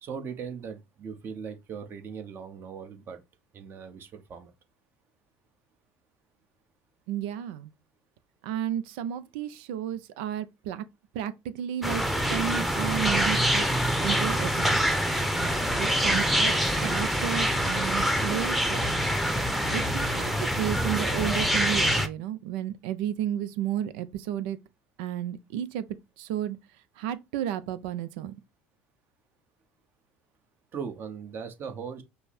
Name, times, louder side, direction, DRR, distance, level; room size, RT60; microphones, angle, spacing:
voice 1, 0.0-3.2 3.5-4.5 30.7-32.0, right 6 dB, 45° right, 1.2 m, -39 dB
voice 2, 7.1-7.7 8.4-10.8 11.1-12.0 12.3-13.7 14.0-14.8 15.8-16.5 16.8-18.9 19.7-24.6 25.0-25.8 26.2-26.6 27.0-28.3, right 10 dB, 75° right, 0.6 m, -32 dB
sound 1, 11.8-22.1, equal, ahead, 0.8 m, -25 dB
5.5 x 2.2 x 4.2 m
hypercardioid pair, 80°, 6 cm